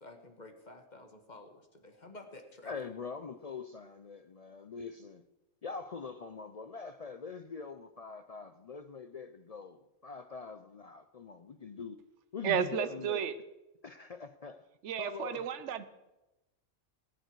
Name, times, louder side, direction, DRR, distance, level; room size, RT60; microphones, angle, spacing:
voice 1, 0.0-2.7, left 2 dB, 35° left, 6 dB, 1.4 m, -51 dB
voice 2, 2.7-5.2 5.6-12.0 12.3-13.2 13.8-14.6 15.0-15.5, left 5 dB, 75° left, 10 dB, 0.3 m, -43 dB
voice 3, 12.4-13.3 14.8-15.9, right 8 dB, 65° right, 12 dB, 1.1 m, -32 dB
19.0 x 9.1 x 4.7 m, 1.0 s
omnidirectional pair, 1.4 m